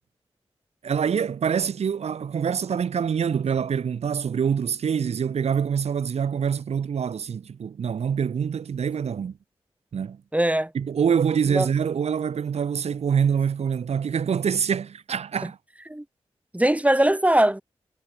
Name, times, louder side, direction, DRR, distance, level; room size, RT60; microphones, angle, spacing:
voice 1, 0.8-9.3 9.9-10.2 10.7-15.6, right 7 dB, 90° right, 2.0 m, -25 dB
voice 2, 10.3-10.7 11.5-11.7 15.9-16.0 16.5-17.6, right 1 dB, 15° right, 4.7 m, -20 dB
cardioid pair, 45°, 11 cm